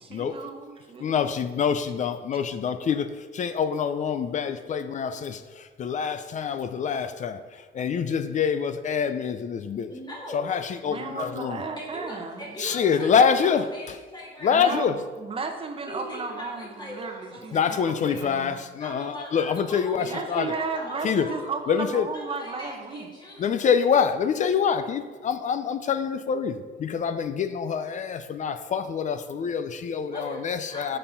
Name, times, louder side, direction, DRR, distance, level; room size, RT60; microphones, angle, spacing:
voice 1, 0.0-1.4 10.8-12.6 14.5-14.9 15.2-18.6 20.0-23.1, right 4 dB, 25° right, 5 dB, 0.8 m, -34 dB
voice 2, 1.0-9.9 10.3-11.6 12.6-14.0 14.4-15.0 17.5-20.6 21.0-21.3 21.7-22.1 23.4-31.0, left 7 dB, 35° left, 10 dB, 0.4 m, -26 dB
voice 3, 9.9-10.6 11.8-13.1 13.4-14.8 15.9-18.5 18.8-21.5 22.1-23.6 30.1-30.4 30.7-31.0, equal, 20° left, -4 dB, 2.3 m, -40 dB
6.7 x 5.5 x 5.6 m, 1.4 s
cardioid pair, 155°, 21 cm